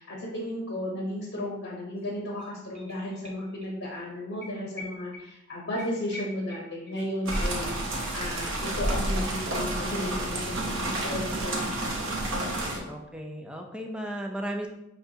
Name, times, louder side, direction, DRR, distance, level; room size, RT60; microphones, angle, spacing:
voice 1, 0.0-12.1 12.6-12.9, left 1 dB, 65° left, -3 dB, 1.0 m, -34 dB
sound 1, 2.0-2.1 2.3-3.7 4.0-4.1 4.4-8.1 8.4-8.5, left 1 dB, 30° right, 1.0 m, -46 dB
sound 2, 7.3-12.8, right 1 dB, 80° right, 0.9 m, -30 dB
voice 2, 12.9-14.7, right 1 dB, 5° right, 1 dB, 0.5 m, -35 dB
5.4 x 3.4 x 2.7 m, 0.87 s
head